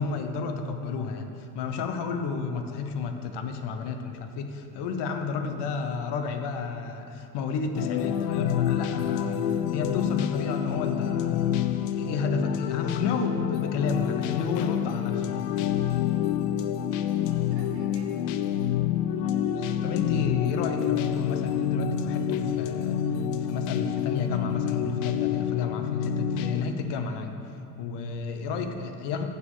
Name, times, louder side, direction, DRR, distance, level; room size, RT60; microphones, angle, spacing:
voice 1, 0.0-11.5 11.9-15.4 19.5-23.0 23.4-27.4 27.8-29.3, left 4 dB, 60° left, 6 dB, 0.9 m, -31 dB
sound 1, 7.7-26.6, left 10 dB, 75° left, 0.6 m, -28 dB
voice 2, 16.8-18.4 28.5-28.7, right 3 dB, 85° right, 0 dB, 1.3 m, -52 dB
6.8 x 5.4 x 6.3 m, 2.7 s
hypercardioid pair, 80°, 48 cm